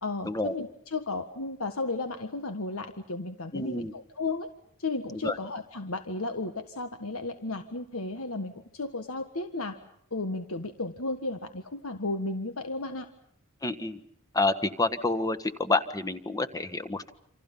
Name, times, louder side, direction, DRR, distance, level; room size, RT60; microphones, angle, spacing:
voice 1, 0.0-4.5 4.8-9.8 10.1-13.1, left 3 dB, 70° left, 7 dB, 1.6 m, -34 dB
voice 2, 3.5-3.9 5.2-5.4 13.6-14.0 14.3-17.1, left 2 dB, 15° left, 8 dB, 1.5 m, -28 dB
28.5 x 27.0 x 5.6 m, 0.69 s
head